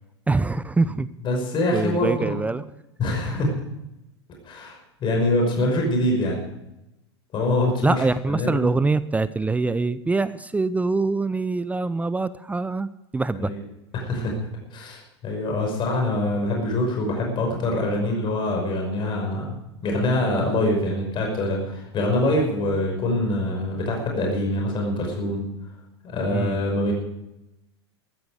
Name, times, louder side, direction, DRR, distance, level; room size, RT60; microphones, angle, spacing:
voice 1, 0.3-1.1 1.7-2.6 3.4-3.5 7.8-13.5 26.3-26.6, right 3 dB, 10° right, 16 dB, 0.6 m, -24 dB
voice 2, 1.2-2.4 3.0-3.5 4.4-6.4 7.3-8.0 8.3-8.7 13.3-13.6 13.9-14.3 14.7-19.6 19.8-25.4 26.0-26.9, left 1 dB, 35° left, 0 dB, 5.6 m, -24 dB
14.5 x 14.0 x 5.0 m, 0.90 s
figure-of-eight pair, 85°, 14 cm